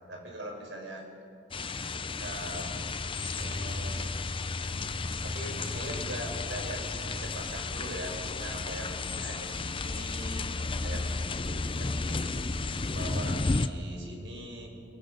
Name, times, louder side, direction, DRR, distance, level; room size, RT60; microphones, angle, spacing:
voice 1, 0.1-1.0 1.9-2.7 3.2-4.1 5.2-12.3 12.9-14.7, right 1 dB, 80° right, 1 dB, 5.4 m, -41 dB
sound 1, 1.5-13.7, left 3 dB, 30° left, 0.7 m, -33 dB
29.0 x 21.5 x 5.5 m, 2.5 s
head